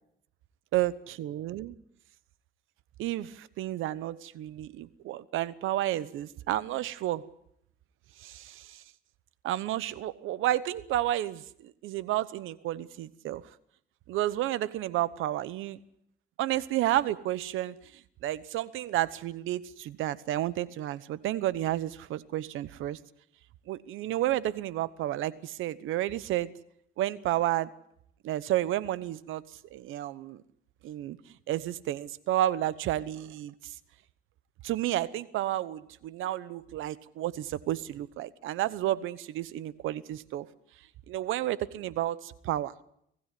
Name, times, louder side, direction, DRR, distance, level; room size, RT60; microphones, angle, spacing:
voice 1, 0.7-1.7 3.0-7.2 8.2-8.8 9.4-13.4 14.1-15.8 16.4-17.8 18.2-23.0 23.7-26.5 27.0-27.7 28.2-29.4 29.7-30.4 30.8-31.2 31.5-33.8 34.6-40.5 41.1-42.7, right 14 dB, 90° right, 1.1 m, -31 dB
26.0 x 16.0 x 9.4 m
cardioid pair, 90°, 20 cm